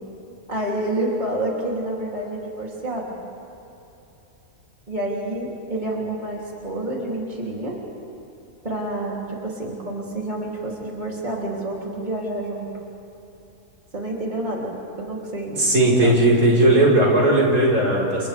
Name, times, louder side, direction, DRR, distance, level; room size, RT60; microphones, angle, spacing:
voice 1, 0.5-3.2 4.9-7.8 8.6-12.7 13.9-15.7 16.0-16.8, right 1 dB, 30° right, -4 dB, 3.4 m, -29 dB
voice 2, 15.5-18.3, right 1 dB, 85° right, -4 dB, 5.3 m, -17 dB
30.0 x 30.0 x 3.5 m, 3.0 s
omnidirectional pair, 1.4 m